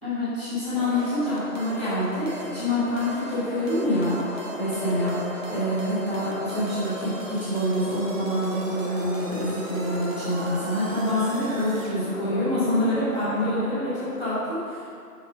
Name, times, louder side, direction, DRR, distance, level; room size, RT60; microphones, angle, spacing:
voice 1, 0.0-4.2 4.6-14.9, left 1 dB, 5° left, -24 dB, 1.2 m, -26 dB
sound 1, 0.8-14.2, left 1 dB, 35° left, 0.9 m, -36 dB
sound 2, 0.9-12.0, right 3 dB, 55° right, 0.8 m, -44 dB
5.3 x 4.8 x 5.1 m, 2.3 s
figure-of-eight pair, 155°, 48 cm